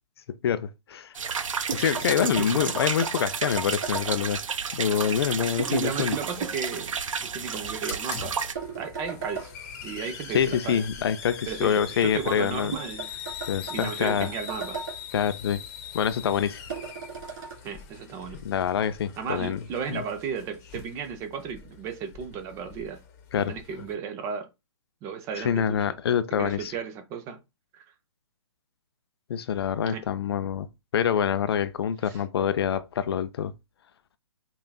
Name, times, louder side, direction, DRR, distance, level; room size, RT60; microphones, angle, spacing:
voice 1, 0.4-1.1 1.7-4.4 4.7-6.1 10.3-12.7 13.5-14.3 15.1-15.6 15.9-16.6 18.4-19.6 19.9-20.0 23.3-23.5 25.4-26.7 29.3-30.7 30.9-33.5, left 8 dB, 50° left, 0.4 m, -26 dB
sound 1, 1.1-8.5, right 6 dB, 85° right, 0.5 m, -32 dB
sound 2, 1.7-4.2 5.6-6.6 8.5-9.5 12.7-15.0 16.7-17.5, right 5 dB, 40° right, 2.0 m, -35 dB
voice 2, 5.7-6.9 7.2-8.5 8.8-9.5 9.8-10.9 11.5-13.1 13.7-14.8 17.6-18.4 19.2-23.0 23.4-24.5 25.0-26.0 26.4-27.4 27.7-27.8 29.9-30.1 32.1-32.2, right 6 dB, 15° right, 0.4 m, -34 dB
Hiss, 6.1-23.9, left 7 dB, 30° left, 0.9 m, -43 dB
5.4 x 2.4 x 2.2 m
hypercardioid pair, 140°, 16 cm